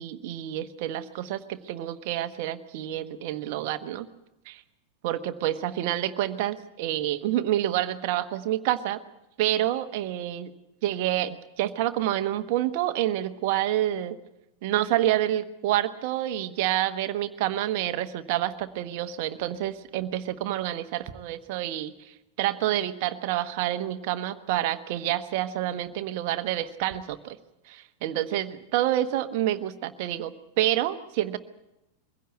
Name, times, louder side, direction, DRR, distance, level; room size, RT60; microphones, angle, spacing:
voice 1, 0.0-4.1 4.5-4.6 5.0-9.0 9.4-10.5 10.8-14.2 14.6-27.4 27.7-31.4, right 13 dB, 50° right, 10 dB, 1.2 m, -28 dB
23.0 x 16.0 x 8.4 m, 0.92 s
figure-of-eight pair, 90°, 0 cm